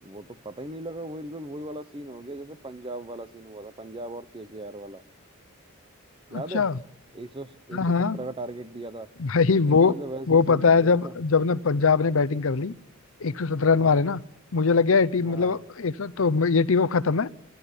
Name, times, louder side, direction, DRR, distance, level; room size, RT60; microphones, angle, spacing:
voice 1, 0.0-5.0 6.3-6.7 7.1-9.1 9.6-11.1 13.7-14.1 15.2-15.6, right 1 dB, 25° right, 0.8 m, -38 dB
voice 2, 6.3-6.8 7.7-8.2 9.2-9.9 10.3-12.7 13.2-14.2 14.5-17.3, left 4 dB, 65° left, 0.7 m, -22 dB
27.0 x 12.0 x 8.3 m
head